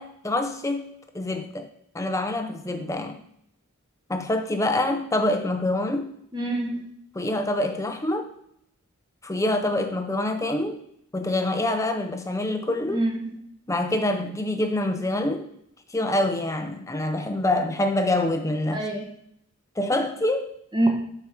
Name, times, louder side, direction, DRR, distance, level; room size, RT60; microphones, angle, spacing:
voice 1, 0.0-1.7 1.9-3.2 4.1-6.1 7.2-8.3 9.2-10.8 11.1-13.0 13.7-15.5 15.9-18.8 19.8-20.5, left 1 dB, 15° left, 6 dB, 0.6 m, -26 dB
voice 2, 6.3-6.9 12.9-13.4 18.7-19.1 20.7-20.9, right 1 dB, 20° right, 1 dB, 1.2 m, -26 dB
7.0 x 4.6 x 5.9 m, 0.72 s
head